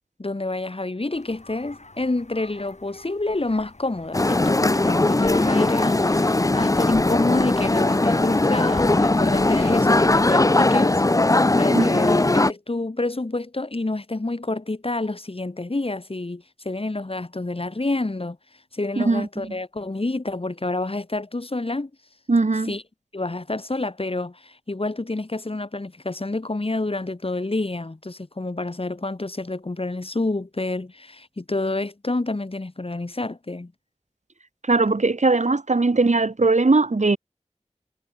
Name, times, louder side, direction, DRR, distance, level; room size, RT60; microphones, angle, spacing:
voice 1, 0.2-11.0 11.6-18.4 18.7-21.9 22.7-22.8 23.1-33.7, left 2 dB, 50° left, 2.1 m, -28 dB
sound 1, 1.1-10.3, left 2 dB, 70° left, 6.3 m, -44 dB
sound 2, 4.1-12.5, left 2 dB, 30° left, 0.6 m, -19 dB
voice 2, 11.7-12.1 19.0-19.6 22.3-22.7 34.7-37.2, right 3 dB, 80° right, 2.0 m, -20 dB
wide cardioid pair, 45°, 12 cm